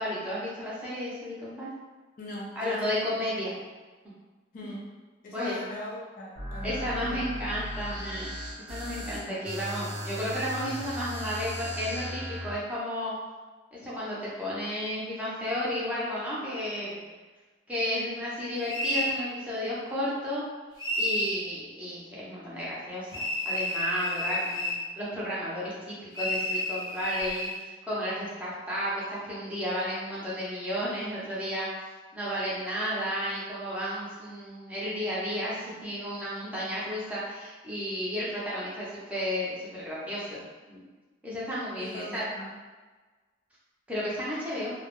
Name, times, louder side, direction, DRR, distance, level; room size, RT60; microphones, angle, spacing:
voice 1, 0.0-1.7 2.6-3.5 4.6-4.7 5.3-5.6 6.6-8.3 8.7-13.1 13.7-17.0 17.7-20.4 21.0-31.7 32.1-40.4 40.7-40.8 41.2-42.2 43.9-44.7, equal, 5° right, -8 dB, 0.6 m, -33 dB
voice 2, 2.2-3.1 3.4-3.5 4.5-4.9 5.2-7.2 9.2-9.4 16.8-17.0 41.8-42.5, left 1 dB, 45° left, -3 dB, 0.4 m, -40 dB
sound 1, 6.4-12.6, equal, 85° right, 0.7 m, -37 dB
sound 2, 18.7-19.1 20.8-21.4 23.1-24.8 26.1-27.5, left 1 dB, 20° left, 0.9 m, -30 dB
2.2 x 2.0 x 2.9 m, 1.3 s
head